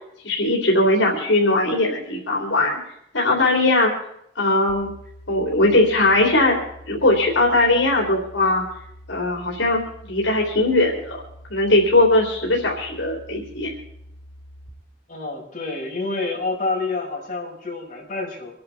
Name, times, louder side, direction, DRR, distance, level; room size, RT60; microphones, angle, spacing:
voice 1, 0.2-2.8 3.1-3.9 4.4-4.9 5.3-6.6 6.9-8.6 9.1-11.2 11.5-13.7, left 2 dB, 80° left, -1 dB, 3.7 m, -19 dB
sound 1, 4.7-14.7, equal, 10° left, 4.1 m, -45 dB
voice 2, 15.1-18.5, left 3 dB, 40° left, -4 dB, 5.8 m, -28 dB
25.5 x 10.5 x 4.4 m, 0.74 s
head